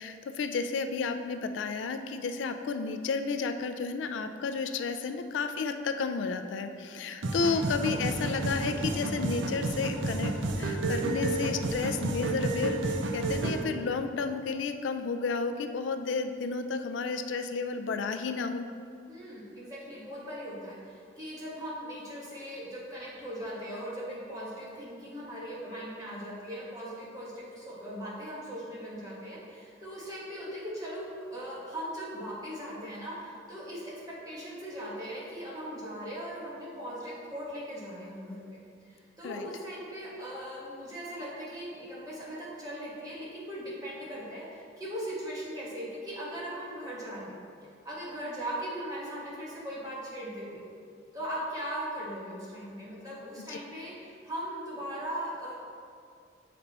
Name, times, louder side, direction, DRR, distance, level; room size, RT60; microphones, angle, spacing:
voice 1, 0.0-10.3 10.6-18.6 39.2-39.5 53.5-53.6, left 4 dB, 80° left, 8 dB, 0.3 m, -32 dB
sound 1, 7.2-13.6, right 2 dB, 80° right, 0.5 m, -31 dB
voice 2, 19.1-47.4 47.8-50.6 51.1-55.5, equal, 20° right, -7 dB, 1.3 m, -39 dB
6.5 x 4.3 x 4.1 m, 2.3 s
head